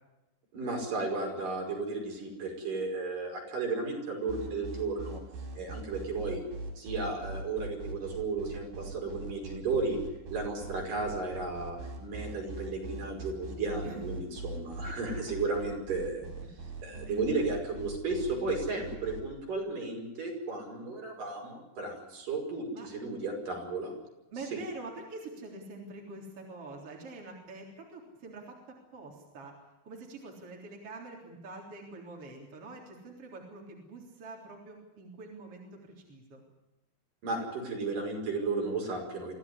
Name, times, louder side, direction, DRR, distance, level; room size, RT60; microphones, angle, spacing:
voice 1, 0.5-5.2 5.5-6.4 6.8-10.0 10.3-16.2 16.8-23.9 37.2-39.3, right 3 dB, 60° right, 1 dB, 7.1 m, -34 dB
sound 1, 4.3-19.2, right 3 dB, 85° right, 6.8 m, -41 dB
voice 2, 24.3-29.5 29.8-36.4, right 3 dB, 40° right, -1 dB, 4.4 m, -45 dB
25.0 x 16.0 x 9.7 m, 1.0 s
omnidirectional pair, 4.4 m